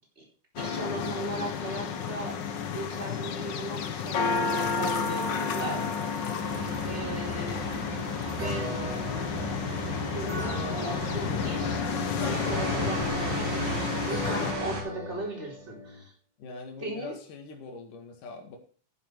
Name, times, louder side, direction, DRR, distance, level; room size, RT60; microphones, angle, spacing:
sound 1, 0.6-14.5, left 6 dB, 65° left, 1.1 m, -31 dB
voice 1, 0.6-6.0 6.8-7.7 8.3-8.7 10.1-11.8 12.2-16.1 16.8-17.2, right 2 dB, 20° right, -1 dB, 4.4 m, -38 dB
sound 2, 6.4-14.8, right 3 dB, 70° right, 4.7 m, -35 dB
sound 3, 8.4-16.0, right 1 dB, 35° right, 5.2 m, -40 dB
voice 2, 16.4-18.6, left 4 dB, 80° left, 2 dB, 3.5 m, -43 dB
11.0 x 10.0 x 4.6 m, 0.42 s
omnidirectional pair, 3.6 m